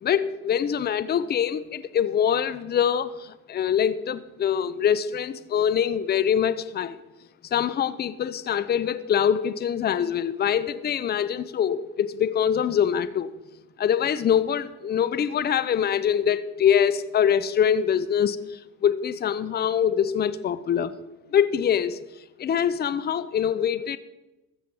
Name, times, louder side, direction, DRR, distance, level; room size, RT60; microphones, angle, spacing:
voice 1, 0.0-7.0 7.5-13.3 13.8-20.9 21.3-22.0 22.4-24.0, left 8 dB, 30° left, 0.7 m, -24 dB
14.0 x 7.5 x 7.2 m
supercardioid pair, 90°, 35 cm